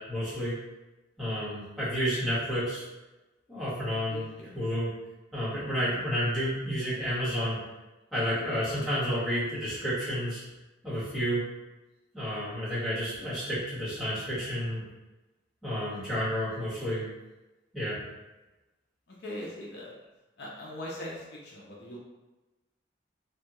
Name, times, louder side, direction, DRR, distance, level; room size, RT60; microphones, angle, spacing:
voice 1, 0.1-0.5 1.2-2.8 3.5-4.3 4.5-4.9 5.3-7.6 8.1-10.4 10.8-11.4 12.1-14.8 15.6-17.1 17.7-18.0, equal, ahead, -12 dB, 1.3 m, -30 dB
voice 2, 4.1-4.5 19.1-19.9 20.4-22.0, left 1 dB, 60° left, -4 dB, 0.6 m, -40 dB
3.3 x 2.2 x 3.0 m, 1.1 s
head